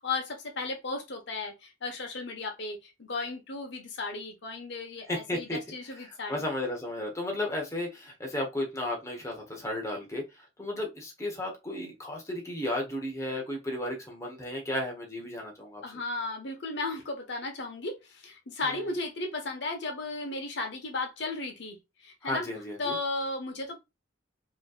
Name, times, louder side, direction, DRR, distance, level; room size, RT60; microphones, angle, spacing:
voice 1, 0.0-6.4 7.3-7.5 15.8-22.5 22.8-23.8, left 3 dB, 65° left, 1.2 m, -35 dB
voice 2, 5.1-5.6 6.0-15.8 18.6-18.8 22.2-23.0, left 1 dB, 15° left, 1.1 m, -34 dB
5.1 x 3.2 x 2.4 m
head